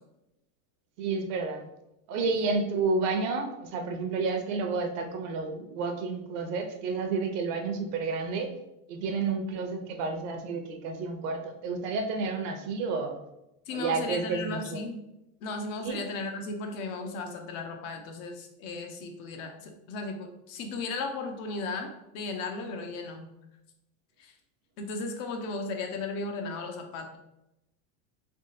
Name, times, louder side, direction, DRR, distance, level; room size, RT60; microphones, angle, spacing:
voice 1, 1.0-1.7 2.1-8.5 8.9-13.2 13.7-14.8 15.8-16.0, right 4 dB, 60° right, 5 dB, 0.7 m, -30 dB
voice 2, 13.7-15.1 15.4-23.3 24.2-24.3 24.8-27.2, left 3 dB, 60° left, 4 dB, 0.8 m, -36 dB
3.5 x 2.9 x 2.8 m, 0.88 s
supercardioid pair, 130°, 43 cm